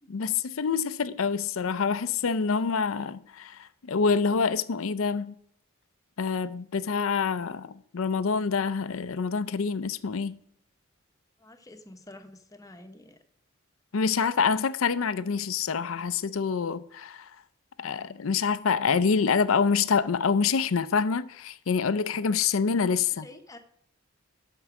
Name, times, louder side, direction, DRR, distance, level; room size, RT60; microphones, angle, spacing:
voice 1, 0.1-5.4 6.2-10.4 13.9-17.3 17.8-23.2, left 5 dB, 70° left, 0.5 m, -26 dB
voice 2, 11.4-13.2 22.8-23.6, left 1 dB, 15° left, 0.9 m, -49 dB
12.0 x 4.6 x 5.9 m
head